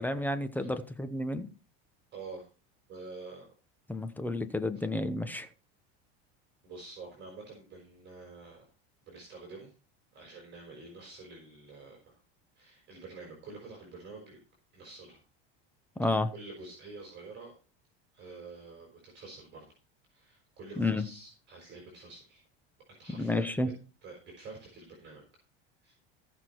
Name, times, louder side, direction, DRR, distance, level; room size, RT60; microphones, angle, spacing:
voice 1, 0.0-1.5 3.9-5.5 16.0-16.3 20.8-21.1 23.1-23.7, left 2 dB, 5° left, 0.9 m, -31 dB
voice 2, 2.1-2.5 2.9-3.5 6.6-8.7 9.1-9.7 10.1-12.2 12.5-14.4 14.7-15.2 16.0-17.5 18.1-19.7 20.1-22.4 22.9-23.7 24.0-25.2 25.8-26.0, right 3 dB, 35° right, 5.1 m, -48 dB
16.5 x 6.0 x 4.6 m
supercardioid pair, 140°, 30 cm